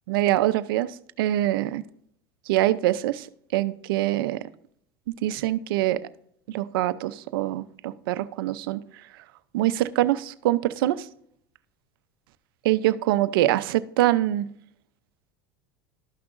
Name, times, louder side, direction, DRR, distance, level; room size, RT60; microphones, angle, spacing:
voice 1, 0.1-1.8 2.5-3.3 3.5-4.4 5.2-6.0 6.5-8.8 9.5-11.1 12.6-14.5, right 15 dB, 80° right, 15 dB, 0.5 m, -24 dB
12.5 x 5.9 x 2.5 m, 0.68 s
supercardioid pair, 105°, 12 cm